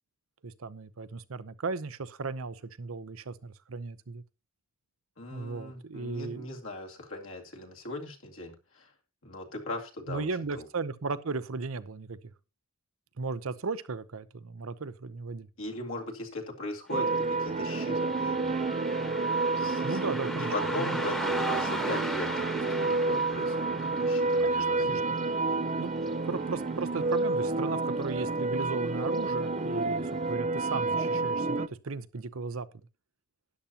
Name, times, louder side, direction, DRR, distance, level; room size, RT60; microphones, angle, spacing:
voice 1, 0.4-4.2 5.3-6.5 10.1-12.3 13.2-15.5 19.8-20.5 20.8-21.0 24.4-25.2 25.8-25.9 26.2-32.9, right 4 dB, 75° right, 0.7 m, -36 dB
voice 2, 5.2-8.9 9.2-10.3 10.5-10.6 15.6-18.5 19.5-25.0, left 2 dB, 70° left, 2.3 m, -39 dB
Car passing by, 16.9-27.7 28.0-28.1 29.0-29.2 29.7-29.8 30.3-30.4, equal, 5° left, 1.2 m, -40 dB
sound 1, 16.9-31.7, right 3 dB, 35° right, 0.5 m, -29 dB
12.5 x 10.0 x 2.9 m
head